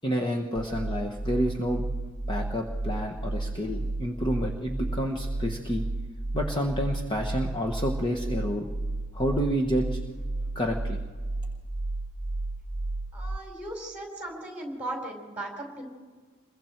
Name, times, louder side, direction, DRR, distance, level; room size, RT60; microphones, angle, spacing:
voice 1, 0.0-1.8 2.3-5.8 6.3-8.7 9.1-10.0 10.5-11.0, equal, 20° left, 1 dB, 1.2 m, -29 dB
sound 1, 0.6-13.4, right 2 dB, 65° right, 0.7 m, -33 dB
voice 2, 13.1-15.8, right 1 dB, 5° right, 1 dB, 4.4 m, -37 dB
27.0 x 22.0 x 4.5 m, 1.5 s
head